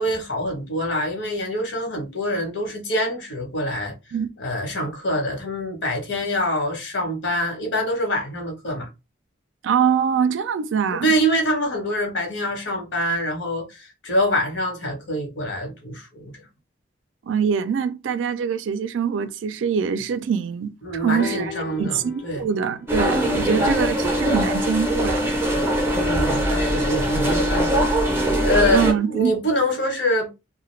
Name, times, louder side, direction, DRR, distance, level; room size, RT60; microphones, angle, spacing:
voice 1, 0.0-3.9 4.4-8.9 10.9-16.4 20.8-22.4 23.5-23.7 25.9-30.3, equal, 80° left, 1.0 m, -25 dB
voice 2, 9.6-11.1 17.2-21.5 21.8-25.3 28.7-29.3, right 7 dB, 90° right, 0.3 m, -24 dB
sound 1, 21.2-25.0 25.9-26.0, left 5 dB, 55° left, 0.4 m, -38 dB
sound 2, 22.9-28.9, equal, 10° right, 0.5 m, -21 dB
2.3 x 2.1 x 3.1 m
head